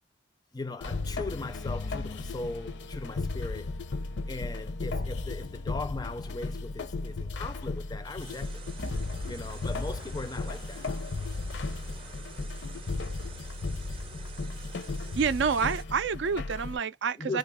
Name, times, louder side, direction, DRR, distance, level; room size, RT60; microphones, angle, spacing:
voice 1, 0.5-3.7 4.3-8.6 9.3-11.0 17.2-17.4, left 3 dB, 20° left, 0.4 m, -39 dB
sound 1, 0.8-16.8, left 3 dB, 65° left, 0.6 m, -35 dB
sound 2, 8.2-15.8, right 4 dB, 30° right, 0.6 m, -48 dB
voice 2, 15.2-17.4, right 6 dB, 70° right, 0.4 m, -28 dB
3.2 x 2.4 x 3.5 m
head